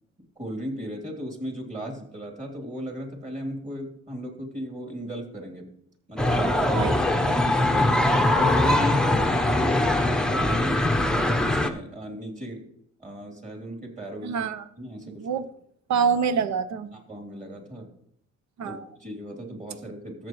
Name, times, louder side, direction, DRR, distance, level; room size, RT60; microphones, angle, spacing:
voice 1, 0.4-5.7 6.1-7.0 7.2-7.9 8.4-12.7 13.0-14.3 14.8-15.4 16.9-17.9 18.6-20.3, equal, 25° right, 2 dB, 3.1 m, -36 dB
sound 1, 6.2-11.7, left 1 dB, ahead, 0.8 m, -22 dB
voice 2, 14.2-14.6 15.0-15.4 15.9-16.9 18.6-18.9, right 6 dB, 65° right, 12 dB, 0.8 m, -26 dB
14.0 x 7.4 x 3.1 m, 0.72 s
cardioid pair, 90°, 30 cm